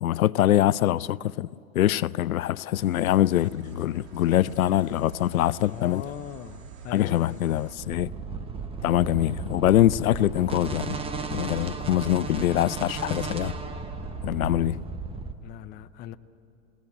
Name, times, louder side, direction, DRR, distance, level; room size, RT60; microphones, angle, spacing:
voice 1, 0.0-1.5 1.7-6.0 6.9-8.1 8.8-11.0 11.3-13.5 14.2-14.8, left 13 dB, 85° left, 0.5 m, -24 dB
sound 1, 2.7-7.8, right 7 dB, 70° right, 2.7 m, -46 dB
voice 2, 5.6-7.6 15.4-16.2, left 11 dB, 25° left, 0.6 m, -40 dB
sound 2, 7.8-15.3, right 4 dB, 15° right, 1.0 m, -34 dB
20.0 x 17.0 x 8.9 m
hypercardioid pair, 120°, 41 cm